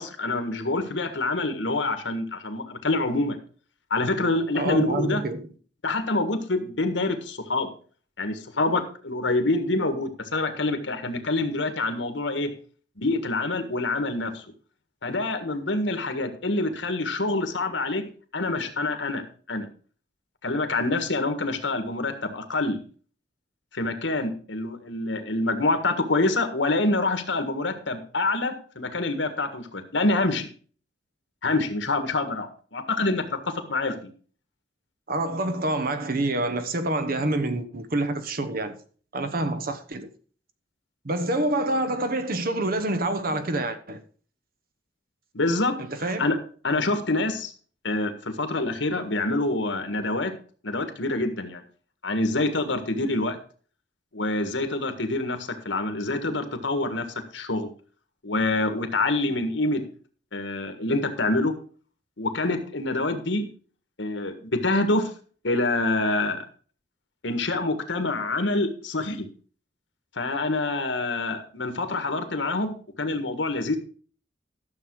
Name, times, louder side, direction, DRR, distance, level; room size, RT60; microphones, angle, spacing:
voice 1, 0.0-3.4 3.9-5.2 5.8-7.7 8.2-12.5 13.0-14.4 15.0-18.1 18.3-19.7 20.4-22.8 23.7-30.5 31.4-33.3 33.5-34.1 45.3-46.4 46.6-47.5 47.8-50.3 50.6-51.6 52.0-53.4 54.1-57.0 57.3-57.7 58.2-59.8 60.3-61.5 62.2-63.5 64.0-65.1 65.4-66.4 67.2-69.3 70.2-73.8, left 2 dB, 85° left, 1.7 m, -26 dB
voice 2, 4.5-5.5 35.1-38.8 39.1-40.1 41.0-44.0 45.8-46.3, right 2 dB, 50° right, 1.1 m, -27 dB
12.5 x 7.0 x 4.7 m
head